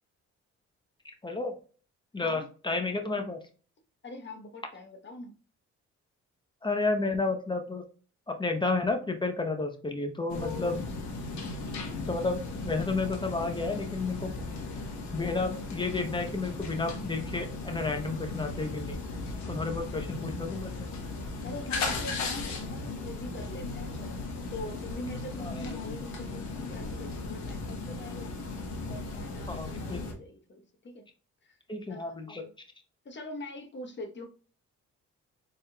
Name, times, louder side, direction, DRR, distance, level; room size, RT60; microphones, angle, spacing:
voice 1, 1.2-1.5 2.1-3.4 6.6-7.8 8.3-10.8 12.1-14.3 15.1-19.0 19.5-20.7 25.4-25.8 29.5-30.0 31.7-32.4, left 3 dB, 15° left, 5 dB, 0.8 m, -31 dB
voice 2, 4.0-5.3 10.4-10.8 21.4-24.2 24.5-28.3 28.9-31.0 31.4-31.6 31.9-32.5 33.0-34.3, left 2 dB, 35° left, 4 dB, 1.1 m, -43 dB
sound 1, 10.3-30.1, left 3 dB, 65° left, 1.2 m, -37 dB
4.1 x 3.6 x 2.3 m, 0.39 s
cardioid pair, 90°, 30 cm